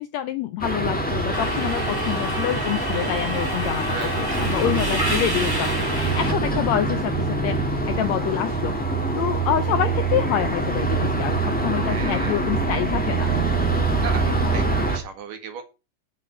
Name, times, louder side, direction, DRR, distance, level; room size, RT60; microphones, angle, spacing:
voice 1, 0.0-8.7 9.2-13.3, left 11 dB, 80° left, 10 dB, 1.6 m, -27 dB
sound 1, 0.6-15.0, right 3 dB, 10° left, 0.6 m, -24 dB
Subway metro underground, 1.3-6.3, equal, 10° right, 1.2 m, -29 dB
voice 2, 3.9-4.2 11.8-12.4 14.0-15.6, right 6 dB, 85° right, 5 dB, 3.4 m, -35 dB
8.2 x 5.2 x 7.5 m, 0.30 s
omnidirectional pair, 3.7 m